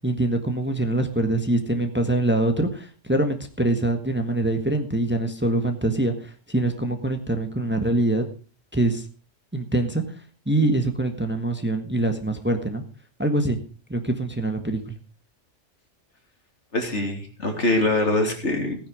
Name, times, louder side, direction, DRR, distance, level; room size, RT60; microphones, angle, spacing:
voice 1, 0.0-8.2 8.7-9.1 9.5-10.0 10.4-12.8 13.2-13.6 13.9-14.9, right 2 dB, 10° right, 6 dB, 1.5 m, -24 dB
voice 2, 16.7-18.8, left 2 dB, 65° left, 3 dB, 3.5 m, -23 dB
16.0 x 10.0 x 5.0 m, 0.38 s
omnidirectional pair, 1.3 m